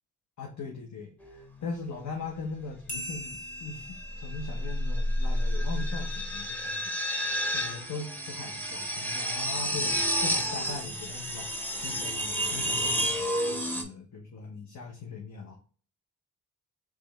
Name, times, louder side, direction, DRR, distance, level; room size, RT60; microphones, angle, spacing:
voice 1, 0.4-7.3 7.5-15.5, left 4 dB, 60° left, 0 dB, 0.9 m, -40 dB
sound 1, 1.2-1.6 3.8-13.8, equal, 5° left, 0.9 m, -30 dB
sound 2, 2.9-5.9, left 1 dB, 25° left, 1.4 m, -42 dB
3.4 x 3.2 x 3.2 m, 0.42 s
supercardioid pair, 45°, 33 cm